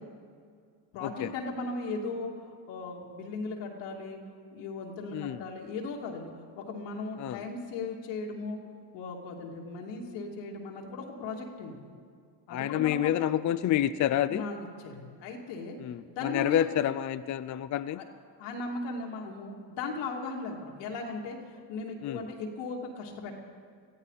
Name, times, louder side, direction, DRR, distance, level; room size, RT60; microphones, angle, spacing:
voice 1, 0.9-2.3 2.7-4.2 4.5-8.6 8.9-11.8 12.5-13.1 14.3-15.8 16.1-16.7 17.9-18.0 18.4-23.3, left 3 dB, 80° left, 0 dB, 2.8 m, -37 dB
voice 2, 12.5-14.4 15.8-18.0 22.0-22.2, left 11 dB, 40° left, 13 dB, 0.5 m, -28 dB
21.0 x 14.5 x 4.2 m, 2.1 s
supercardioid pair, 80°, 49 cm